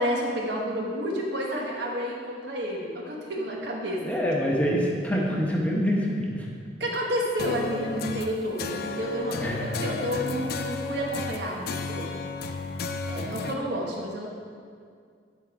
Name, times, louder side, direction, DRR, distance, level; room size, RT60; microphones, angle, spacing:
voice 1, 0.0-4.1 4.5-4.6 6.8-12.2 13.1-14.3, equal, 70° right, -2 dB, 1.3 m, -30 dB
voice 2, 4.0-6.5 9.4-9.6, equal, 10° left, -2 dB, 1.0 m, -25 dB
sound 1, 7.4-13.5, left 4 dB, 55° left, 0.4 m, -33 dB
10.5 x 3.7 x 4.9 m, 2.2 s
head